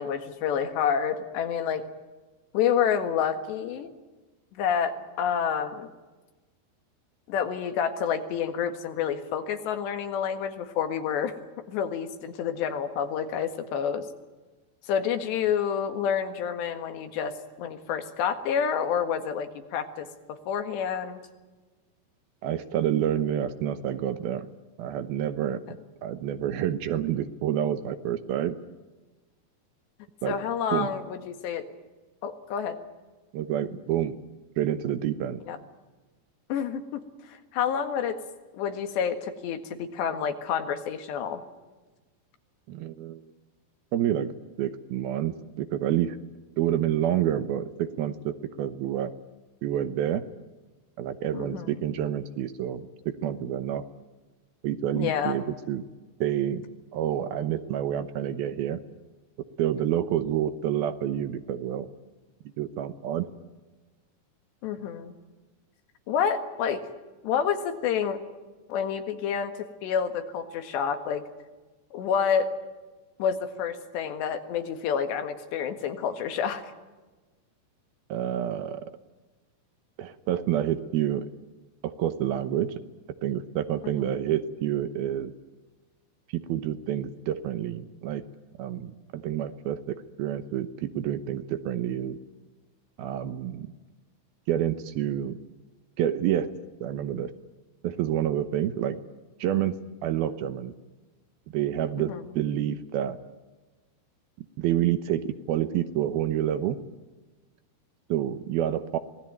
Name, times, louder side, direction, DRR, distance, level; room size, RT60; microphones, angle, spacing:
voice 1, 0.0-1.9 2.5-3.9 4.5-5.9 7.3-11.3 11.7-14.1 14.9-21.2 30.2-31.6 32.2-32.8 35.5-35.6 36.5-38.2 38.5-41.4 51.3-51.8 55.0-55.4 64.6-65.1 66.1-66.8 67.2-68.2 68.7-69.5 69.8-71.3 71.9-72.5 73.2-76.7 84.0-84.1 102.1-102.2, left 7 dB, 85° left, 7 dB, 4.0 m, -28 dB
voice 2, 22.4-24.5 24.8-25.6 26.0-28.6 30.2-30.4 30.7-30.9 33.3-34.2 34.6-35.4 42.7-43.2 43.9-44.3 44.6-46.2 46.6-49.1 49.6-50.3 51.0-53.8 54.6-55.8 56.2-56.6 56.9-58.8 59.6-61.9 62.6-63.3 78.1-78.9 80.0-81.3 81.8-82.7 83.2-85.3 86.3-88.2 88.6-92.2 93.0-93.7 94.5-95.4 96.0-96.5 96.8-97.3 97.8-99.0 99.4-99.8 100.0-100.7 101.5-103.2 104.6-106.8 108.1-109.0, right 11 dB, 75° right, 11 dB, 2.6 m, -28 dB
26.0 x 19.5 x 9.1 m, 1.2 s
omnidirectional pair, 4.9 m